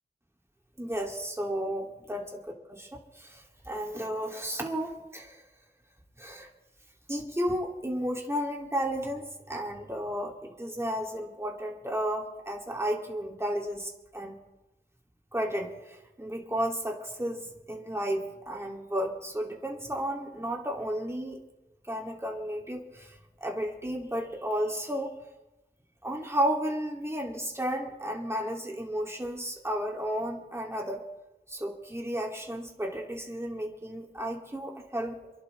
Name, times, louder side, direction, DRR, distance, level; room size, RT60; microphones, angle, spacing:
voice 1, 0.8-2.2 2.7-5.4 6.2-6.5 7.1-14.3 15.3-21.4 21.9-25.1 26.0-31.0 31.5-35.2, equal, 15° right, 0 dB, 3.1 m, -33 dB
28.0 x 11.5 x 3.6 m, 1.0 s
cardioid pair, 60°, 20 cm